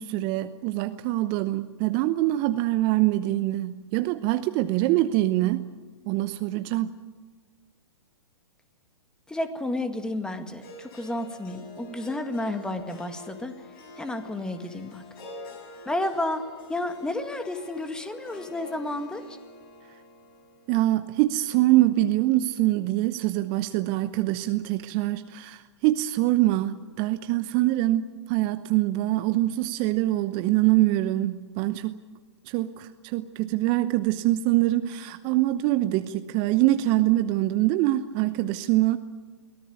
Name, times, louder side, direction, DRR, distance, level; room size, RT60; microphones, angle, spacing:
voice 1, 0.0-5.7 6.1-6.9 20.7-32.0 32.5-39.0, right 16 dB, 35° right, 11 dB, 0.9 m, -24 dB
voice 2, 9.3-13.5 14.0-15.0 15.9-16.4 16.7-19.4, left 1 dB, 5° left, 8 dB, 1.9 m, -31 dB
Harp, 10.6-22.8, left 2 dB, 50° left, 7.4 m, -47 dB
23.5 x 17.5 x 9.3 m, 1.4 s
figure-of-eight pair, 115°, 15 cm